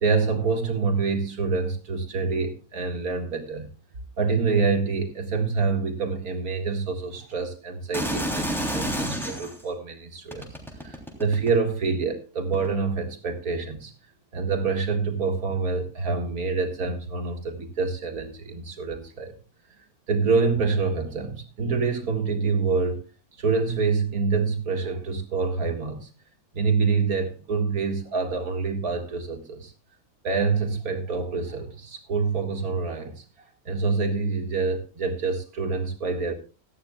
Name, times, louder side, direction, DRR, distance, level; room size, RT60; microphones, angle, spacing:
voice 1, 0.0-3.7 4.2-10.5 10.8-13.9 14.3-19.3 20.1-23.0 23.4-26.1 26.5-29.7 30.2-33.2 33.7-36.3, right 4 dB, 85° right, 2.6 m, -26 dB
sound 1, 7.9-9.6 10.3-11.7 12.5-12.7, equal, ahead, 3.1 m, -29 dB
17.5 x 13.5 x 2.3 m
omnidirectional pair, 1.5 m